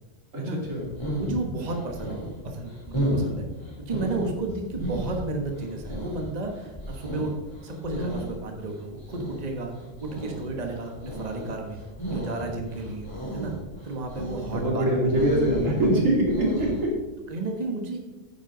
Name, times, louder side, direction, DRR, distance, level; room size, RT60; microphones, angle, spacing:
voice 1, 0.3-0.8 14.5-17.0, right 1 dB, 85° right, -1 dB, 2.9 m, -23 dB
sound 1, 0.7-16.9, right 1 dB, 20° left, 3.3 m, -34 dB
voice 2, 1.1-2.2 2.4-3.5 3.9-7.3 7.6-9.7 10.0-11.8 12.1-13.5 13.8-15.3 15.6-15.7 16.6-16.8 17.3-18.0, right 2 dB, 35° right, 2 dB, 1.3 m, -33 dB
9.8 x 9.6 x 3.9 m, 1.2 s
omnidirectional pair, 1.3 m